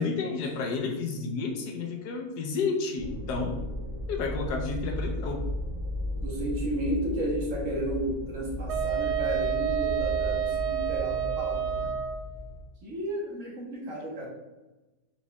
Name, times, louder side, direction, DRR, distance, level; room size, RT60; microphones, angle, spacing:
voice 1, 0.0-3.6 4.1-5.5, left 4 dB, 85° left, 3 dB, 1.3 m, -31 dB
sound 1, 3.0-12.6, equal, 30° right, 0.6 m, -35 dB
voice 2, 6.2-11.9 12.8-14.3, right 1 dB, 55° right, -3 dB, 1.4 m, -33 dB
Wind instrument woodwind instrument, 8.7-12.3, right 9 dB, 80° right, 0.6 m, -29 dB
4.6 x 4.2 x 2.3 m, 1.1 s
omnidirectional pair, 1.7 m